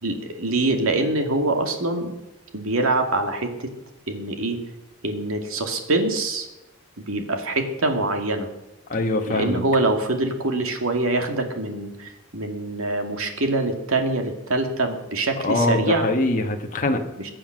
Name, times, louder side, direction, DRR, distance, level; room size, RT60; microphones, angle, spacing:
voice 1, 0.0-2.1 2.5-3.7 4.1-4.6 5.0-6.5 7.0-8.5 9.3-16.1 17.2-17.3, right 2 dB, 70° right, 4 dB, 2.3 m, -24 dB
voice 2, 8.9-9.6 15.4-17.0, left 2 dB, 35° left, 3 dB, 1.3 m, -23 dB
22.0 x 7.7 x 6.4 m, 0.99 s
head